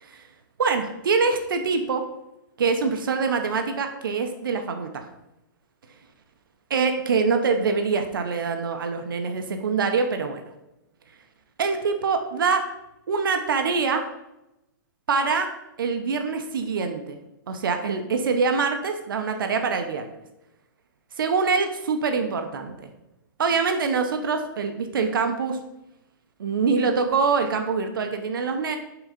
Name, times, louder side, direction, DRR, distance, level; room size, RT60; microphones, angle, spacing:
voice 1, 0.6-2.0 2.6-5.1 6.7-10.4 11.6-12.6 13.1-14.0 15.1-15.5 15.8-17.2 17.5-20.0 21.2-22.9 23.4-25.6 26.4-28.8, right 5 dB, 90° right, 6 dB, 0.8 m, -24 dB
5.9 x 3.8 x 5.1 m, 0.91 s
hypercardioid pair, 170°, 11 cm